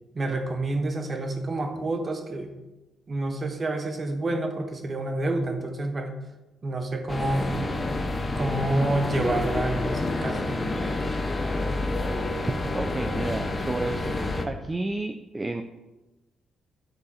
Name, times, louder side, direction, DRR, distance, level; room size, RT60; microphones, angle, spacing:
voice 1, 0.1-2.5 3.1-6.1 6.6-7.5 8.3-10.6, right 2 dB, 35° right, 5 dB, 1.1 m, -28 dB
sound 1, 7.1-14.5, left 2 dB, 25° left, 0.8 m, -28 dB
voice 2, 12.3-14.1 14.4-15.6, right 2 dB, 20° right, 6 dB, 0.5 m, -31 dB
9.8 x 3.9 x 4.2 m, 1.1 s
cardioid pair, 90°, 0 cm